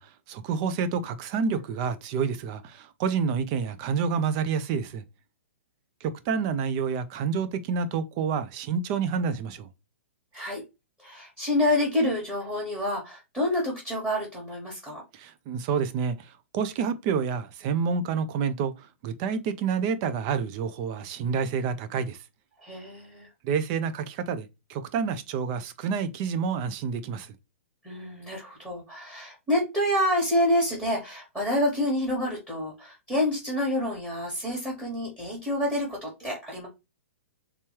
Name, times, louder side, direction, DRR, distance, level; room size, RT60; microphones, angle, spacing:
voice 1, 0.0-5.0 6.0-9.7 15.1-22.2 23.4-27.3, right 6 dB, 25° right, 0.4 m, -28 dB
voice 2, 11.0-15.0 22.6-23.3 27.8-36.7, left 1 dB, 5° right, 1.2 m, -28 dB
3.4 x 3.0 x 2.9 m
hypercardioid pair, 165°, 7 cm